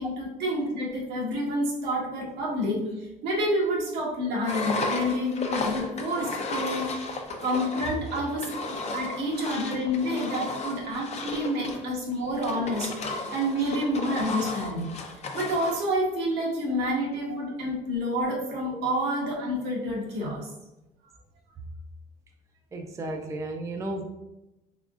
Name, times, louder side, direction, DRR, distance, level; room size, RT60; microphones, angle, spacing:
voice 1, 0.0-7.2 7.4-8.5 8.9-12.9 13.3-14.9 15.3-20.5, equal, 80° right, -3 dB, 1.3 m, -28 dB
Engine, 4.5-15.9, left 2 dB, 40° left, 0.5 m, -34 dB
voice 2, 22.7-24.0, right 2 dB, 20° right, 2 dB, 0.4 m, -35 dB
3.6 x 3.5 x 2.4 m, 0.94 s
cardioid pair, 110°, 17 cm